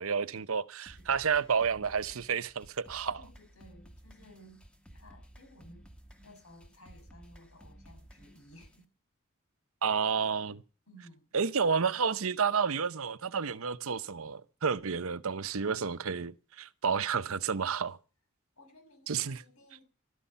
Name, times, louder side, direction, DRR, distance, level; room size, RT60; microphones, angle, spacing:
voice 1, 0.0-3.2 9.8-10.6 11.3-18.0 19.1-19.4, right 6 dB, 80° right, 0.8 m, -30 dB
sound 1, 0.9-8.8, right 1 dB, 5° left, 1.4 m, -55 dB
voice 2, 3.2-4.6 4.9-5.9 6.2-8.9 10.9-11.3 16.9-17.6 18.6-19.8, equal, 85° left, 6.4 m, -57 dB
15.5 x 13.0 x 5.6 m
head